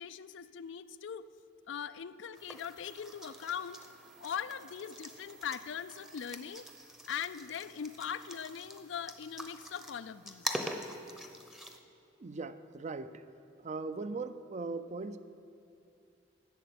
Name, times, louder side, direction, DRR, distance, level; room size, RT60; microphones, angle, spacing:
voice 1, 0.0-1.3 1.7-3.9 4.2-6.7 7.0-10.5, left 8 dB, 85° left, 13 dB, 0.4 m, -40 dB
sound 1, 2.3-11.8, equal, ahead, 0.7 m, -44 dB
voice 2, 12.2-13.2 13.6-15.2, right 3 dB, 40° right, 12 dB, 0.5 m, -39 dB
12.5 x 6.8 x 8.6 m, 2.6 s
head